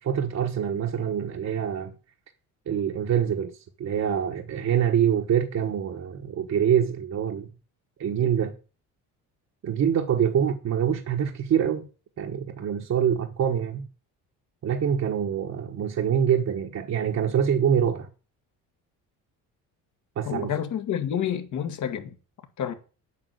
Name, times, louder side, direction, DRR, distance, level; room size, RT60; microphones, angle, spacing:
voice 1, 0.0-1.9 2.7-3.5 3.8-7.5 8.0-8.5 9.6-11.9 12.2-13.9 14.6-18.1 20.2-20.5, right 8 dB, 50° right, 1.3 m, -25 dB
voice 2, 20.3-22.2 22.6-22.7, left 9 dB, 60° left, 1.9 m, -29 dB
8.7 x 5.8 x 8.0 m
cardioid pair, 105°, 34 cm